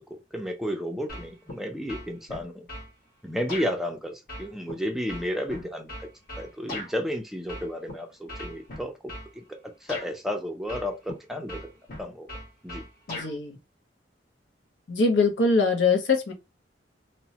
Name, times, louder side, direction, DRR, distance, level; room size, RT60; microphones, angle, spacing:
voice 1, 0.1-2.7 3.2-6.1 6.4-8.9 9.8-11.6 12.0-12.3 12.6-12.8, equal, ahead, 0.4 m, -32 dB
sound 1, 1.1-1.6 1.9-2.9 3.5-3.7 4.3-6.9 7.5-7.9 8.3-9.3 9.9-10.1 10.7-11.2 11.5-13.3, left 1 dB, 55° left, 1.2 m, -38 dB
voice 2, 13.1-13.6 14.9-16.3, left 3 dB, 75° left, 0.7 m, -23 dB
2.9 x 2.1 x 2.8 m
head